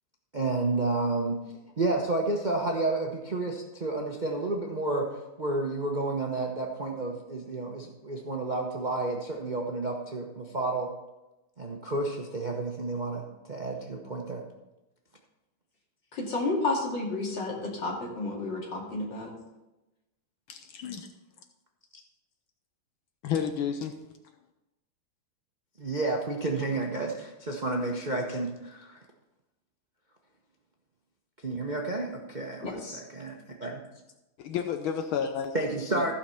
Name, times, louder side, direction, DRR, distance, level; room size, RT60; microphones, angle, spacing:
voice 1, 0.3-1.4 1.8-10.9 11.6-14.4 25.8-29.0 31.4-33.8 35.5-36.1, right 2 dB, 35° right, 0 dB, 0.7 m, -31 dB
voice 2, 16.1-19.3 32.6-33.0, left 2 dB, 60° left, -2 dB, 3.1 m, -31 dB
voice 3, 20.5-21.1 23.2-24.0 34.4-35.5, left 8 dB, 75° left, 7 dB, 1.6 m, -31 dB
15.0 x 5.8 x 5.7 m, 1.0 s
omnidirectional pair, 2.3 m